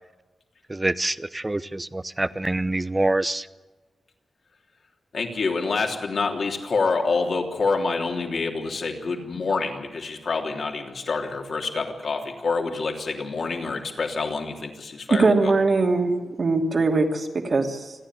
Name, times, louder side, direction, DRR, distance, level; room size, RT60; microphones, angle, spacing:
voice 1, 0.7-3.5, right 2 dB, 20° right, 16 dB, 0.8 m, -25 dB
voice 2, 5.1-15.5, left 4 dB, 60° left, 2 dB, 3.3 m, -27 dB
voice 3, 15.1-17.9, right 3 dB, 50° right, 3 dB, 2.7 m, -21 dB
28.5 x 10.5 x 9.9 m, 1.3 s
cardioid pair, 85°, 0 cm